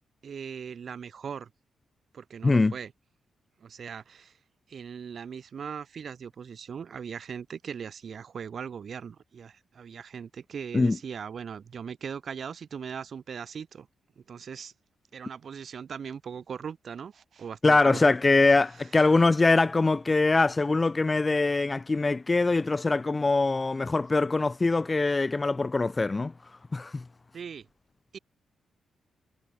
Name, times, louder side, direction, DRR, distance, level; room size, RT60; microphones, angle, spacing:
voice 1, 0.2-1.5 2.1-2.9 3.6-4.4 4.7-13.9 14.2-14.7 15.1-18.1 27.3-27.7 28.1-28.2, right 7 dB, 60° right, 4.5 m, -39 dB
voice 2, 17.6-26.3 26.7-27.0, left 3 dB, 30° left, 0.6 m, -23 dB
hypercardioid pair, 40°, 0 cm